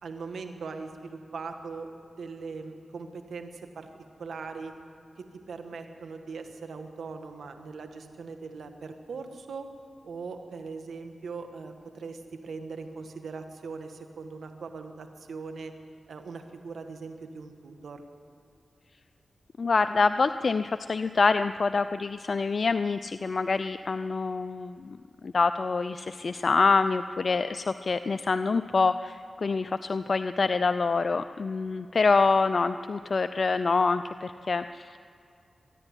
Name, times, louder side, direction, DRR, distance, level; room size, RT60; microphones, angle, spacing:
voice 1, 0.0-3.9 4.2-4.7 5.2-9.7 10.0-15.7 16.1-18.0, right 4 dB, 80° right, 6 dB, 1.6 m, -40 dB
voice 2, 19.6-25.0 25.2-35.0, left 4 dB, 60° left, 11 dB, 0.5 m, -26 dB
24.5 x 11.0 x 9.8 m, 2.5 s
cardioid pair, 40°, 0 cm